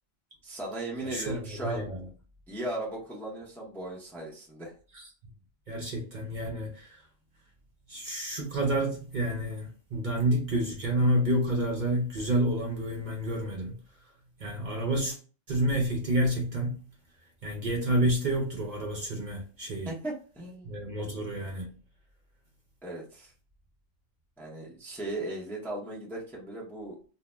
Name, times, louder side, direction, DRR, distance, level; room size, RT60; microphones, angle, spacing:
voice 1, 0.4-1.9 2.5-4.7 19.8-20.8 22.8-23.3 24.4-27.0, right 1 dB, ahead, 0.6 m, -37 dB
voice 2, 1.0-2.0 4.9-5.0 5.7-7.0 7.9-13.7 14.4-15.2 15.5-16.8 17.4-19.9 20.6-21.7, right 1 dB, 50° right, 0.7 m, -29 dB
2.6 x 2.0 x 3.2 m
omnidirectional pair, 1.2 m